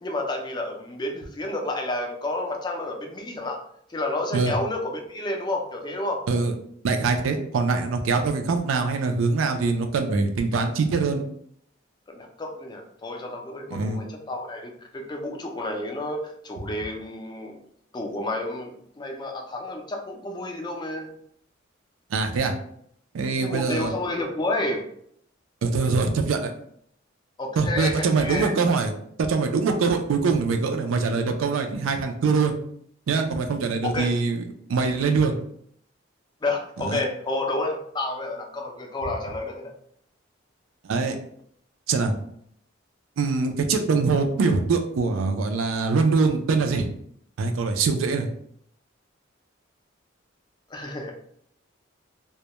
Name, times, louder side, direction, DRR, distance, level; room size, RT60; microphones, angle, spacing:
voice 1, 0.0-3.6 3.9-6.2 12.1-17.6 17.9-21.2 23.4-24.8 27.4-28.5 33.8-34.1 36.4-39.7 50.7-51.1, left 2 dB, 20° left, 2 dB, 0.3 m, -30 dB
voice 2, 6.8-11.2 13.7-14.0 22.1-22.5 23.1-24.0 25.6-26.5 27.6-28.9 29.2-32.5 33.1-34.4 34.7-35.4 36.8-37.0 40.8-41.2 41.9-42.1 43.2-46.9 47.4-48.3, right 4 dB, 85° right, 5 dB, 0.4 m, -23 dB
2.2 x 2.1 x 2.8 m, 0.68 s
head